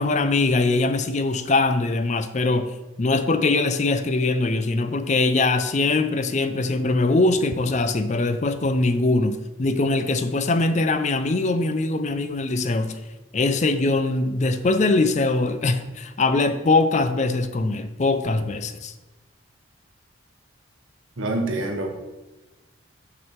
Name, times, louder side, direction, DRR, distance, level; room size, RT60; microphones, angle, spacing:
voice 1, 0.0-2.7 3.0-13.0 13.3-18.9, left 3 dB, 35° left, 0.4 m, -22 dB
voice 2, 21.2-21.9, right 2 dB, 80° right, 1.2 m, -26 dB
6.3 x 6.1 x 4.5 m
head